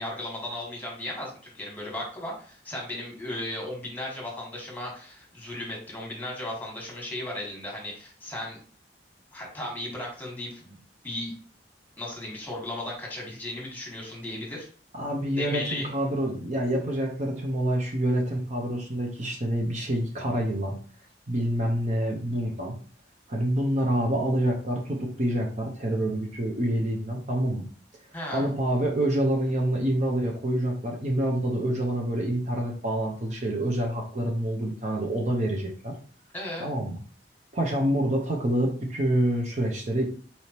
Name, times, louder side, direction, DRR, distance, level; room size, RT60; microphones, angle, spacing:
voice 1, 0.0-8.6 9.3-10.8 11.0-11.3 12.0-14.7 15.4-15.9 28.1-28.5 36.3-36.7, left 1 dB, 10° left, -2 dB, 1.5 m, -36 dB
voice 2, 14.9-20.8 21.3-22.8 23.3-27.7 28.3-35.9 36.6-37.0 37.5-40.0, right 1 dB, 45° right, 0 dB, 0.8 m, -27 dB
4.2 x 3.4 x 2.9 m, 0.42 s
head